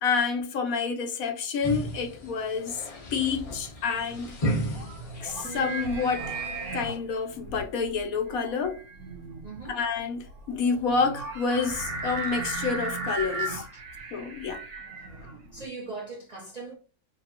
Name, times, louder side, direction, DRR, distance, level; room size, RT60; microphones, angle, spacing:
voice 1, 0.0-2.8 3.1-4.4 5.2-6.4 6.7-8.8 9.7-13.7 14.1-14.6, left 5 dB, 75° left, 1.2 m, -28 dB
sound 1, 1.6-7.0, right 1 dB, 40° left, 0.5 m, -35 dB
sound 2, 4.2-15.7, right 3 dB, 80° right, 1.3 m, -36 dB
sound 3, 5.4-8.9, right 6 dB, 15° right, 1.3 m, -46 dB
voice 2, 9.4-9.8 13.7-13.9 15.5-16.7, right 3 dB, 35° right, 0.7 m, -40 dB
3.0 x 2.9 x 4.3 m
omnidirectional pair, 1.5 m